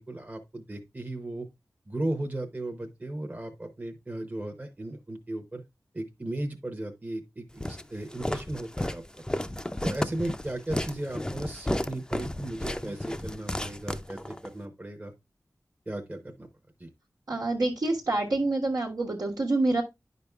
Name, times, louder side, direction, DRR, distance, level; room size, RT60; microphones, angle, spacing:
voice 1, 0.0-1.5 1.9-5.6 5.9-9.0 9.8-15.1 15.9-16.5 16.8-16.9, right 1 dB, 25° right, 4 dB, 0.8 m, -36 dB
Walk footsteps, 7.6-14.5, left 1 dB, 10° left, 0.4 m, -33 dB
voice 2, 17.3-19.8, right 2 dB, 85° right, -6 dB, 1.3 m, -27 dB
10.0 x 5.2 x 2.3 m, 0.22 s
wide cardioid pair, 90°, 7 cm